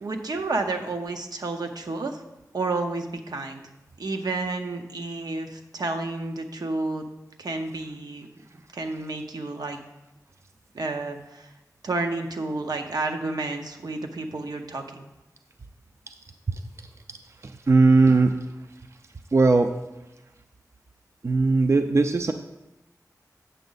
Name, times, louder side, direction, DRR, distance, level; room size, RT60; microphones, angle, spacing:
voice 1, 0.0-2.2 2.5-3.6 4.0-7.0 7.4-8.3 8.7-9.8 10.7-11.5 11.8-15.1, right 3 dB, 80° right, 4 dB, 0.8 m, -30 dB
voice 2, 17.7-18.3 19.3-19.7 21.2-22.3, right 3 dB, 45° right, 7 dB, 0.4 m, -18 dB
8.1 x 6.2 x 4.0 m, 0.99 s
wide cardioid pair, 75°, 7 cm